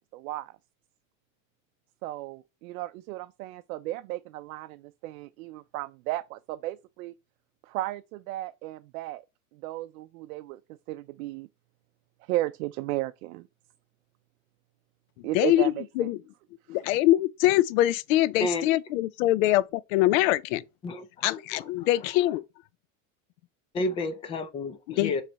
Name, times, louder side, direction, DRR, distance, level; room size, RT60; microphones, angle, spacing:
voice 1, 0.1-0.6 2.0-7.1 7.6-9.2 9.5-10.6 10.9-11.5 12.2-13.5 15.2-16.1 16.7-16.8, right 16 dB, 90° right, 0.5 m, -34 dB
voice 2, 15.3-16.2 16.7-20.6 21.2-22.4 24.9-25.2, left 15 dB, 70° left, 0.5 m, -24 dB
voice 3, 20.8-22.1 23.7-25.2, left 2 dB, 15° left, 0.4 m, -32 dB
7.5 x 3.3 x 3.9 m
supercardioid pair, 160°, 42 cm